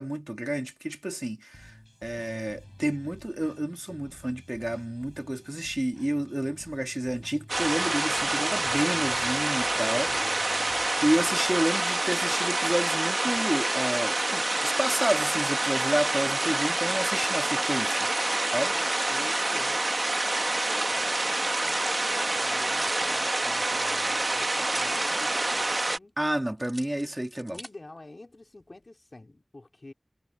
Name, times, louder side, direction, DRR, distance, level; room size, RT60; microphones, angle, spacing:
voice 1, 0.0-10.1 10.4-10.5 11.0-18.1 18.5-18.7 26.2-27.6, right 1 dB, 30° right, 2.0 m, -30 dB
sound 1, 1.5-11.6, equal, 15° left, 8.0 m, -51 dB
sound 2, 7.5-26.0, right 2 dB, 70° right, 1.2 m, -27 dB
voice 2, 9.8-10.5 18.7-19.9 21.6-26.1 27.5-29.9, left 2 dB, 75° left, 3.2 m, -47 dB
sound 3, 11.5-13.0 13.5-15.5 15.8-17.4 19.2-19.7 20.7-25.6 25.9-26.0 26.6-27.7 28.3-28.9, equal, 15° right, 2.9 m, -47 dB
wide cardioid pair, 40°, 0 cm